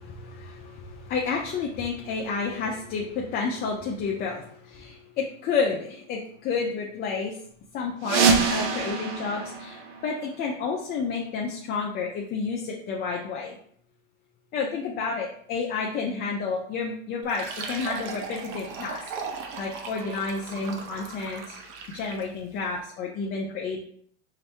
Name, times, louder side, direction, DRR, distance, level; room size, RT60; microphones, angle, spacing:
voice 1, 0.0-7.4 7.7-13.6 14.5-21.6 21.9-23.8, left 4 dB, 30° left, -2 dB, 0.5 m, -30 dB
sound 1, 8.0-10.6, right 5 dB, 80° right, 0.9 m, -25 dB
Fill (with liquid), 17.2-22.4, right 5 dB, 45° right, 0.7 m, -38 dB
4.7 x 2.7 x 3.4 m, 0.62 s
supercardioid pair, 135°, 34 cm